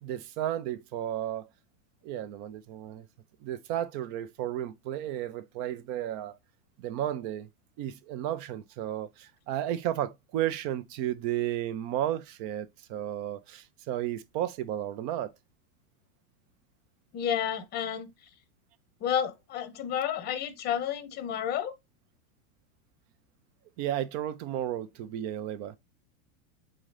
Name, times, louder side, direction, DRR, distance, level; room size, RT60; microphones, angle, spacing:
voice 1, 0.0-1.5 2.0-3.1 3.4-6.4 6.8-7.5 7.8-15.3 23.8-25.8, right 12 dB, 40° right, 0.6 m, -33 dB
voice 2, 17.1-18.1 19.0-21.7, left 9 dB, 25° left, 0.8 m, -31 dB
3.9 x 3.8 x 3.2 m
supercardioid pair, 140°, 41 cm